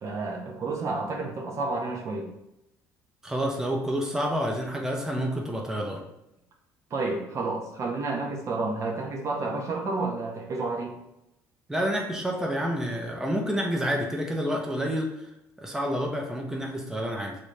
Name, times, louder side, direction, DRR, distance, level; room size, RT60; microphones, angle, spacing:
voice 1, 0.0-2.3 6.9-10.9, right 3 dB, 45° right, 0 dB, 0.8 m, -30 dB
voice 2, 3.2-6.0 11.7-15.3 15.6-17.4, equal, 5° right, -1 dB, 0.6 m, -29 dB
3.1 x 2.6 x 3.1 m, 0.86 s
supercardioid pair, 75°, 7 cm